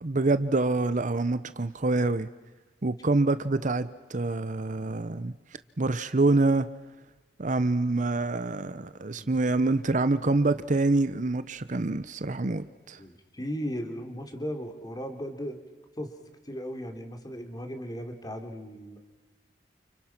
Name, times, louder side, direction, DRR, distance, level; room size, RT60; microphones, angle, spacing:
voice 1, 0.0-2.3 2.8-5.3 5.8-6.7 7.4-13.0, right 2 dB, 45° right, 0.8 m, -26 dB
voice 2, 13.0-15.6 16.0-16.2 16.4-19.0, equal, 25° left, 3.1 m, -36 dB
30.0 x 29.0 x 6.0 m
head